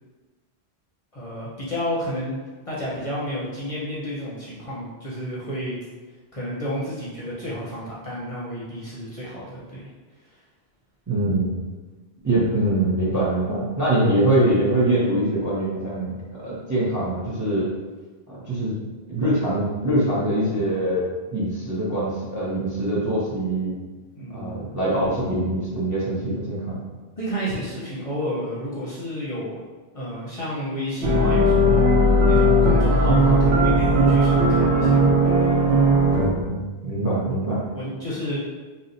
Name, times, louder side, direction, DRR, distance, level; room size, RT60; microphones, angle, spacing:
voice 1, 1.1-2.4 2.7-5.8 6.3-9.9 24.1-24.7 27.2-29.6 29.9-31.9 32.3-35.4 37.7-38.4, equal, 40° left, -7 dB, 0.6 m, -31 dB
voice 2, 11.1-11.5 12.2-16.2 16.4-17.7 18.3-18.8 19.1-23.7 24.3-26.8 36.2-37.6, right 1 dB, 25° right, -7 dB, 0.5 m, -23 dB
sound 1, 31.0-36.3, equal, 80° right, 0.9 m, -17 dB
2.7 x 2.2 x 3.8 m, 1.3 s
omnidirectional pair, 1.1 m